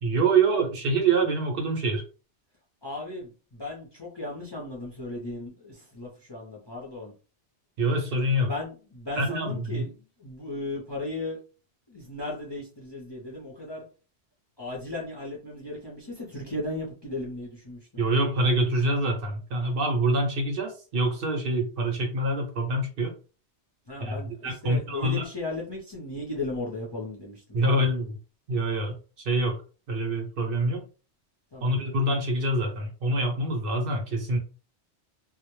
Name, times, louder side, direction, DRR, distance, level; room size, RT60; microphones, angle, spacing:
voice 1, 0.0-2.0 7.8-8.5 9.2-9.8 18.0-23.1 24.0-24.1 24.4-25.3 27.5-28.1 28.5-29.6 29.9-30.9 31.6-34.4, right 2 dB, 60° right, 3 dB, 0.7 m, -25 dB
voice 2, 2.8-7.1 8.5-11.4 11.9-13.9 14.6-18.0 23.9-27.9 31.5-31.7, left 2 dB, 35° left, -3 dB, 0.5 m, -36 dB
2.1 x 2.1 x 3.0 m, 0.35 s
omnidirectional pair, 1.1 m